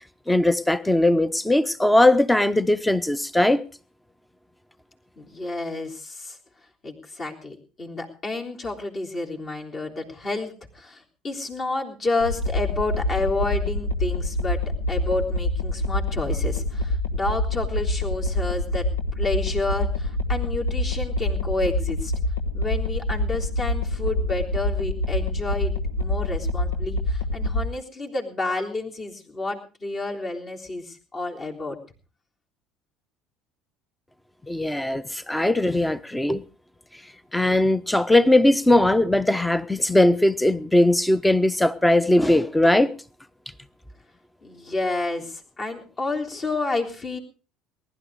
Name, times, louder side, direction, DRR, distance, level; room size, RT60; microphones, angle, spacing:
voice 1, 0.3-3.6 34.5-36.4 37.3-42.9, left 1 dB, 5° left, 0.9 m, -19 dB
voice 2, 5.2-6.4 6.8-14.6 14.9-18.9 19.2-22.1 22.5-31.8 44.4-47.2, left 2 dB, 35° left, 3.5 m, -30 dB
Techno bass, 12.2-27.7, left 1 dB, 85° left, 1.1 m, -26 dB
20.0 x 11.5 x 4.8 m
figure-of-eight pair, 60°, 0 cm